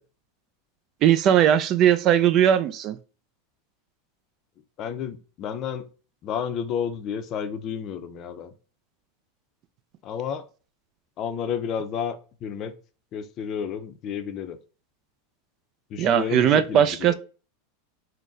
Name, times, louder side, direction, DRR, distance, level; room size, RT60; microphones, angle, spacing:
voice 1, 1.0-3.0 16.0-17.1, right 10 dB, 40° right, 0.3 m, -19 dB
voice 2, 4.8-5.8 6.2-8.5 10.0-10.4 11.2-12.2 12.4-12.7 13.1-14.6 15.9-17.1, left 7 dB, 40° left, 0.5 m, -31 dB
3.9 x 2.1 x 3.8 m
supercardioid pair, 125°, 0 cm